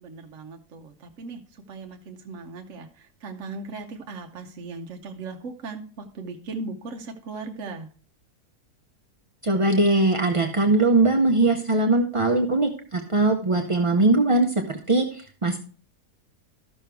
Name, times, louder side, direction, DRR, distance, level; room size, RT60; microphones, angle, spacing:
voice 1, 0.0-1.4 1.7-7.9, right 3 dB, 55° right, 3 dB, 1.0 m, -38 dB
voice 2, 9.4-15.6, right 2 dB, 40° right, 3 dB, 0.4 m, -21 dB
13.0 x 6.3 x 3.3 m, 0.40 s
omnidirectional pair, 1.7 m